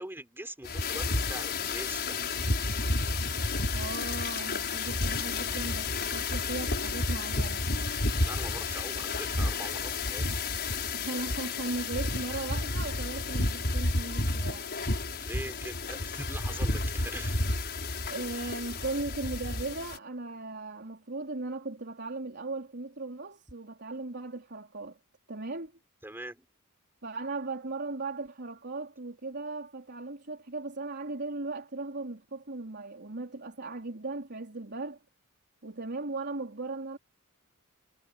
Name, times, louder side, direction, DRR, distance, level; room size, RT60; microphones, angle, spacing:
voice 1, 0.0-2.3 8.2-10.2 15.2-17.6 26.0-26.5, right 1 dB, 10° right, 3.7 m, -42 dB
sound 1, 0.6-20.0, left 3 dB, 50° left, 5.6 m, -31 dB
voice 2, 3.7-7.7 10.9-14.7 18.1-25.0 25.3-25.7 27.0-35.0 35.6-37.0, right 3 dB, 50° right, 4.0 m, -37 dB
head